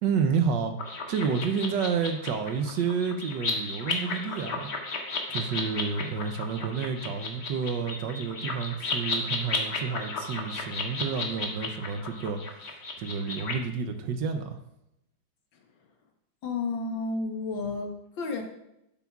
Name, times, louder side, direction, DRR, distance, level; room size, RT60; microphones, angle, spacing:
voice 1, 0.0-4.7 5.3-14.6, right 6 dB, 70° right, 7 dB, 1.3 m, -30 dB
sound 1, 0.8-13.5, left 3 dB, 45° left, 1.0 m, -34 dB
voice 2, 16.4-18.4, left 3 dB, 70° left, 3 dB, 1.8 m, -32 dB
11.5 x 7.9 x 2.4 m, 0.83 s
omnidirectional pair, 2.2 m